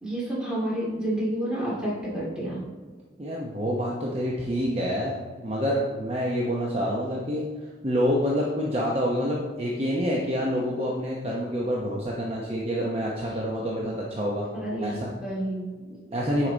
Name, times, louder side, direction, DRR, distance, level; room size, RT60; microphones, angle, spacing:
voice 1, 0.0-2.6 14.6-16.2 16.4-16.5, right 1 dB, 5° right, -7 dB, 2.3 m, -30 dB
voice 2, 3.2-7.5 7.8-14.5 14.8-15.1 16.1-16.5, equal, 30° right, -3 dB, 0.8 m, -27 dB
9.5 x 4.8 x 3.9 m, 1.4 s
head